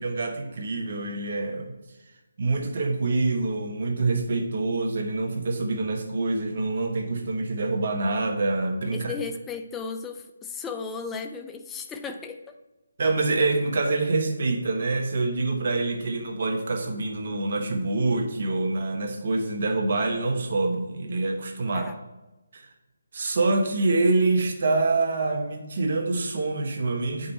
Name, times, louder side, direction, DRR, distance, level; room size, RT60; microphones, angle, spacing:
voice 1, 0.0-1.7 2.4-9.1 13.0-21.9 22.5-22.6 23.1-27.3, right 3 dB, 50° right, 3 dB, 1.4 m, -26 dB
voice 2, 8.9-12.6 21.7-22.0, left 5 dB, 10° left, 6 dB, 0.5 m, -35 dB
8.5 x 5.4 x 4.2 m, 1.1 s
figure-of-eight pair, 155°, 0 cm